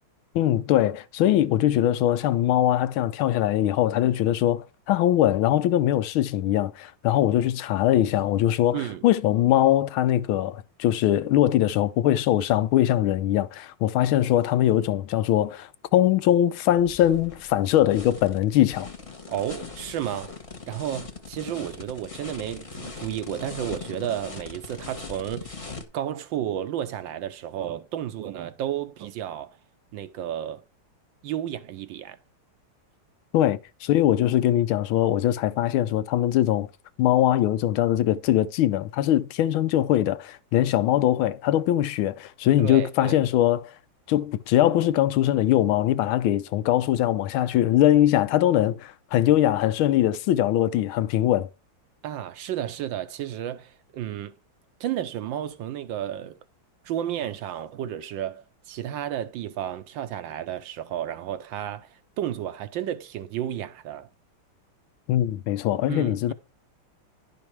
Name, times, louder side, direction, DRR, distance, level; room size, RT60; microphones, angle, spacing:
voice 1, 0.3-18.9 33.3-36.7 37.0-43.7 44.1-51.5 65.1-66.3, left 12 dB, 75° left, 1.4 m, -22 dB
voice 2, 8.7-9.0 19.3-20.4 20.7-25.7 25.9-29.6 29.9-30.6 31.2-32.2 42.6-43.2 52.0-54.4 54.8-56.4 56.8-64.1 65.9-66.3, right 11 dB, 75° right, 1.2 m, -32 dB
sound 1, 16.8-25.8, left 4 dB, 25° left, 0.7 m, -40 dB
11.0 x 5.3 x 4.6 m
omnidirectional pair, 2.3 m